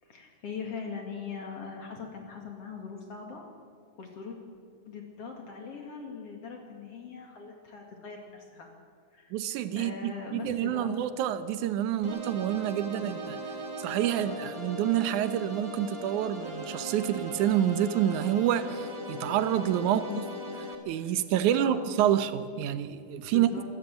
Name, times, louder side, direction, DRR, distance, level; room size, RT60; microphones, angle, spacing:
voice 1, 0.0-3.5 4.0-4.4 4.9-8.7 9.1-9.3 9.8-11.0 19.8-20.2 21.0-21.1 21.5-21.8 23.3-23.6, left 5 dB, 50° left, 2 dB, 2.8 m, -41 dB
voice 2, 9.3-13.4 13.8-20.0 20.9-23.5, right 11 dB, 75° right, 12 dB, 2.2 m, -28 dB
sound 1, 12.0-20.7, right 1 dB, 15° right, 1.3 m, -38 dB
25.0 x 13.5 x 8.1 m, 2.1 s
omnidirectional pair, 3.7 m